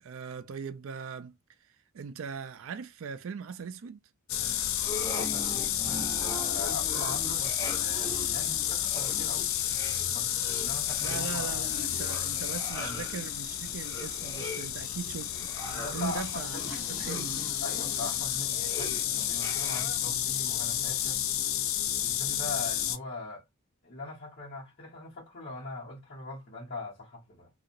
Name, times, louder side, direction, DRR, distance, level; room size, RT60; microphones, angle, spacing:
voice 1, 0.0-1.3 1.9-4.0 11.0-17.4, right 6 dB, 65° right, 0.4 m, -40 dB
sound 1, 4.3-23.0, left 11 dB, 65° left, 0.4 m, -31 dB
sound 2, 4.7-20.1, left 1 dB, 15° left, 1.1 m, -42 dB
voice 2, 5.1-9.5 10.1-11.7 12.8-13.0 15.7-16.9 17.6-21.2 22.0-23.4 23.8-27.5, left 2 dB, 50° left, 1.1 m, -41 dB
2.8 x 2.4 x 2.5 m
head